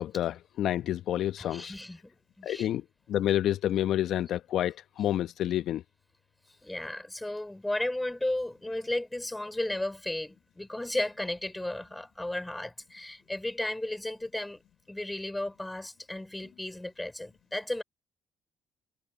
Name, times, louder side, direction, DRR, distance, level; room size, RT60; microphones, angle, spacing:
voice 1, 0.0-1.7 2.4-2.8 3.1-5.8, left 12 dB, 65° left, 1.0 m, -29 dB
voice 2, 1.4-2.7 6.6-14.6 14.9-17.8, left 1 dB, 10° left, 5.0 m, -34 dB
hypercardioid pair, 50°, 0 cm